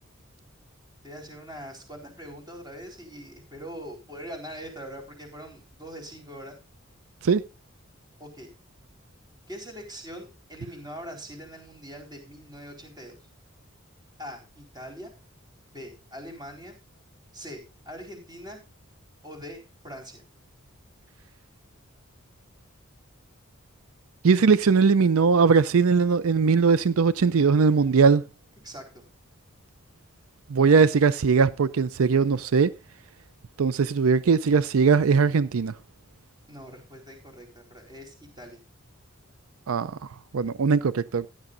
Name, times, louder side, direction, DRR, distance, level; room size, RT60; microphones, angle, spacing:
voice 1, 1.0-6.6 8.2-8.5 9.5-13.2 14.2-15.1 15.7-16.7 17.3-18.6 19.2-20.2 28.6-29.0 36.5-38.6, equal, 20° right, 4.2 m, -42 dB
voice 2, 24.2-28.2 30.5-32.7 33.6-35.7 39.7-40.0 40.3-41.3, right 5 dB, 80° right, 0.5 m, -20 dB
15.5 x 10.0 x 2.6 m
head